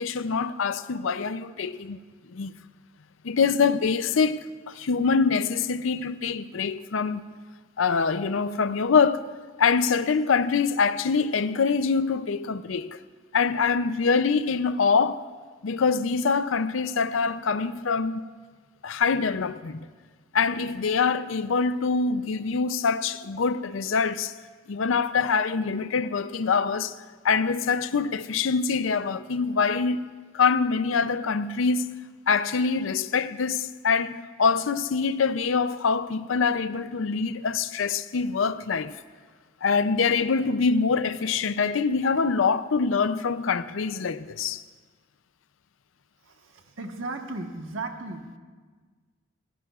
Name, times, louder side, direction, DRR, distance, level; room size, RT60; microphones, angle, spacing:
voice 1, 0.0-2.0 2.3-2.5 3.2-7.2 7.8-9.3 9.6-13.0 13.3-15.2 15.6-18.3 18.8-19.9 20.3-24.3 24.7-26.9 27.2-32.0 32.3-38.9 39.6-44.6, left 5 dB, 80° left, 0.5 m, -24 dB
voice 2, 46.2-48.4, right 2 dB, 80° right, 1.4 m, -36 dB
28.0 x 15.5 x 2.4 m
head